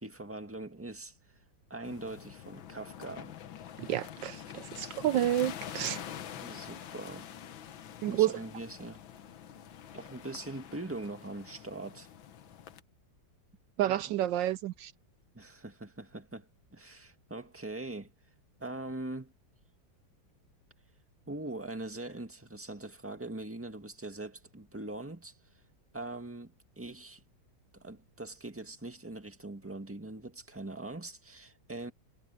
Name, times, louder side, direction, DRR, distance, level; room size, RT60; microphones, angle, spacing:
voice 1, 0.0-1.2 1.7-3.4 6.3-7.3 7.7-7.8 8.1-9.0 9.9-12.1 13.9-14.0 15.3-18.1 18.6-19.3 21.3-25.4 25.9-27.2 27.7-31.9, right 2 dB, 5° right, 1.7 m, -42 dB
sound 1, 1.8-12.8, left 10 dB, 90° left, 1.8 m, -46 dB
voice 2, 3.8-6.1 8.0-8.4 13.8-14.9, right 12 dB, 75° right, 1.3 m, -30 dB
omnidirectional pair, 2.1 m